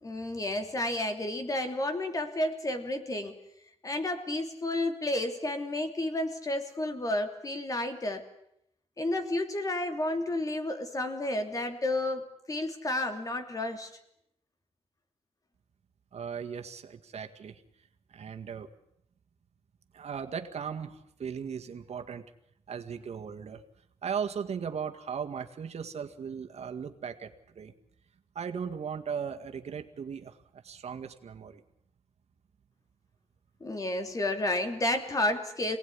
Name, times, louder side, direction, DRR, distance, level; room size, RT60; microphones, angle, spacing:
voice 1, 0.0-3.4 3.8-8.3 9.0-13.9 33.6-35.8, left 1 dB, 30° left, 6 dB, 3.1 m, -31 dB
voice 2, 16.1-17.6 18.1-18.7 19.9-22.2 22.7-23.6 24.0-27.7 28.4-31.6, right 7 dB, 70° right, 6 dB, 2.0 m, -37 dB
27.5 x 18.5 x 9.9 m, 0.75 s
wide cardioid pair, 160°, 11 cm